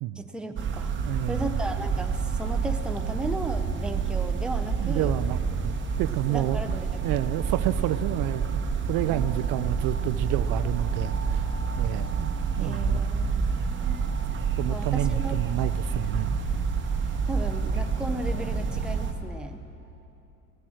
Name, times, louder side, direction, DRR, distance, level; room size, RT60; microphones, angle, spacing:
voice 1, 0.2-1.0 1.3-5.1 6.3-7.0 9.1-9.8 12.6-14.0 14.7-15.4 17.0-19.6, right 1 dB, ahead, 6 dB, 0.7 m, -36 dB
sound 1, 0.6-19.1, right 5 dB, 30° right, 1.1 m, -28 dB
voice 2, 1.0-1.5 4.8-6.8 7.0-8.6 8.9-11.5 11.8-13.0 14.6-16.4, right 14 dB, 60° right, 13 dB, 0.5 m, -29 dB
17.0 x 9.9 x 6.3 m, 3.0 s
supercardioid pair, 110°, 38 cm